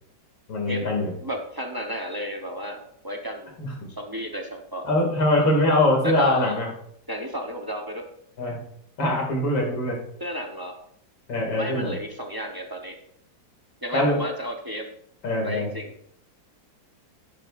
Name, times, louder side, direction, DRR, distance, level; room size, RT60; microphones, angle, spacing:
voice 1, 0.5-1.1 3.6-3.7 4.8-6.7 8.4-8.6 9.0-10.0 11.3-11.9 13.9-14.2 15.2-15.7, left 1 dB, 85° left, 0 dB, 3.2 m, -22 dB
voice 2, 1.2-3.5 4.0-4.9 6.0-6.6 7.1-8.1 10.2-10.7 11.6-13.0 13.8-14.9 15.4-15.9, equal, 25° right, 2 dB, 0.5 m, -32 dB
10.5 x 10.5 x 2.5 m, 0.71 s
omnidirectional pair, 2.0 m